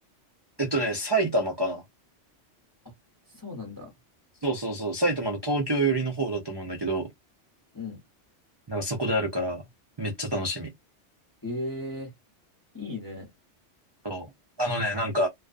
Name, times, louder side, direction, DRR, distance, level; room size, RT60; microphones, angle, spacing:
voice 1, 0.6-1.8 4.4-7.1 8.7-9.6 10.0-10.7 14.0-14.3 14.6-15.3, right 1 dB, 45° right, 0.3 m, -27 dB
voice 2, 3.3-3.9 7.7-8.0 11.4-12.1 12.7-13.3, left 2 dB, 20° left, 0.8 m, -35 dB
2.4 x 2.3 x 2.4 m
omnidirectional pair, 1.2 m